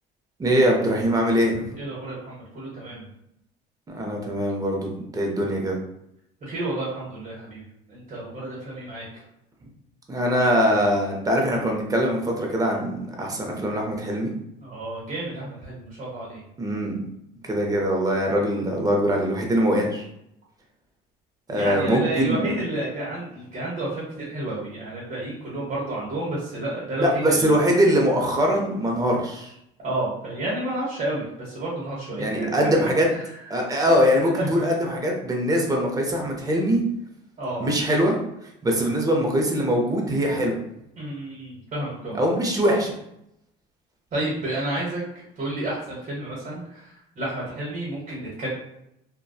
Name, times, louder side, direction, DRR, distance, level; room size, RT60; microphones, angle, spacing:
voice 1, 0.4-1.7 3.9-5.8 10.1-14.3 16.6-17.0 17.5-20.0 21.5-22.6 27.0-29.5 32.2-33.1 33.5-36.8 37.6-38.2 38.6-40.6 42.1-42.9, equal, 20° right, 0 dB, 0.6 m, -22 dB
voice 2, 1.8-3.1 6.4-9.1 14.6-16.4 21.5-27.6 29.8-32.7 33.1-33.4 33.8-34.7 37.4-37.7 41.0-42.2 44.1-48.5, right 1 dB, 40° right, -5 dB, 0.9 m, -31 dB
2.6 x 2.2 x 2.3 m, 0.80 s
cardioid pair, 115°, 19 cm